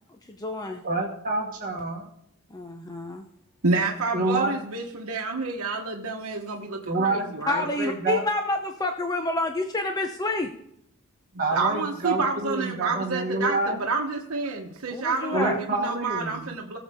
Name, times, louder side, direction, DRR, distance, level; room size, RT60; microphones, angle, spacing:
voice 1, 0.3-0.8 2.5-3.2 7.5-10.5 14.9-15.6, left 2 dB, 15° left, 4 dB, 0.7 m, -28 dB
voice 2, 0.8-2.1 4.1-4.6 6.8-7.3 7.6-8.2 11.4-13.8 15.3-16.5, right 2 dB, 40° right, -2 dB, 1.7 m, -27 dB
voice 3, 3.6-7.7 11.3-16.8, right 3 dB, 75° right, 1 dB, 1.2 m, -29 dB
18.0 x 7.1 x 3.6 m, 0.75 s
head